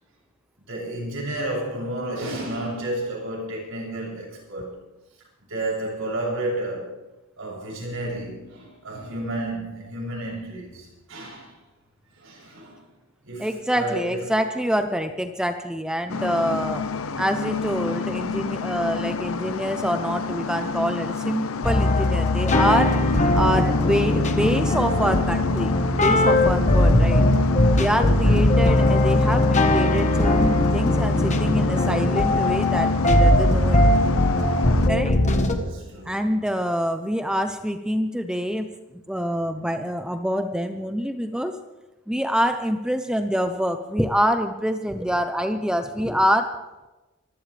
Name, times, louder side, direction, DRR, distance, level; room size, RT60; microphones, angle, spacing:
voice 1, 0.7-4.8 5.5-7.0 7.4-11.5 12.2-12.9 13.2-14.2 28.2-28.6 34.7-34.8 35.2-36.4, right 1 dB, 70° right, 7.5 m, -32 dB
voice 2, 13.4-16.9 17.2-23.0 23.3-27.2 27.7-34.1 34.9-35.2 36.0-38.7 39.1-41.6 42.1-46.5, equal, 5° right, 0.7 m, -26 dB
sound 1, 16.1-34.9, left 5 dB, 75° left, 0.7 m, -29 dB
sound 2, 21.6-35.6, left 1 dB, 35° left, 1.3 m, -20 dB
25.0 x 15.0 x 3.4 m
head